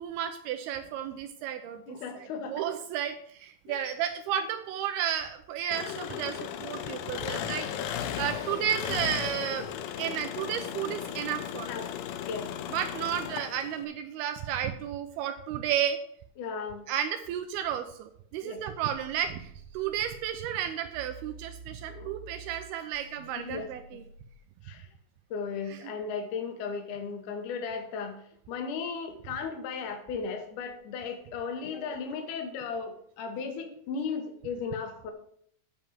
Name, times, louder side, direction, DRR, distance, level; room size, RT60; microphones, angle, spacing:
voice 1, 0.0-2.0 2.5-9.7 10.0-11.7 12.7-16.0 16.9-24.0, right 9 dB, 80° right, 7 dB, 2.5 m, -32 dB
voice 2, 1.9-2.6 3.7-3.9 11.7-11.9 12.2-12.5 16.4-16.9 18.4-18.6 21.9-22.2 23.4-24.0 24.6-24.9 25.3-35.1, left 5 dB, 65° left, 5 dB, 2.4 m, -36 dB
Engine, 5.7-13.8, left 10 dB, 80° left, 2.2 m, -36 dB
sound 1, 18.9-20.4 20.9-24.4, right 4 dB, 45° right, 2.7 m, -49 dB
8.6 x 5.3 x 7.4 m, 0.66 s
omnidirectional pair, 4.7 m